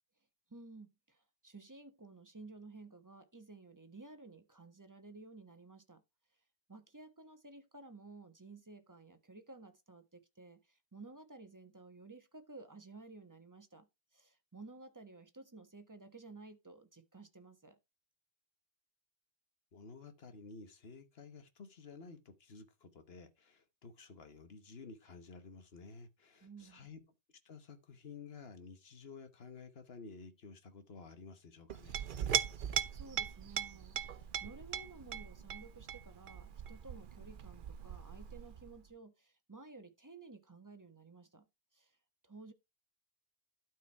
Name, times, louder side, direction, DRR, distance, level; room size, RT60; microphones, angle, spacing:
voice 1, 0.5-6.0 6.7-17.8 26.4-26.9 32.6-41.5 41.7-42.0 42.2-42.5, right 3 dB, 15° right, 1.3 m, -54 dB
voice 2, 19.7-27.0 27.4-32.0, left 4 dB, 65° left, 1.4 m, -53 dB
Chink clink, 31.7-38.8, right 8 dB, 55° right, 0.8 m, -40 dB
12.0 x 4.8 x 4.5 m
omnidirectional pair, 1.1 m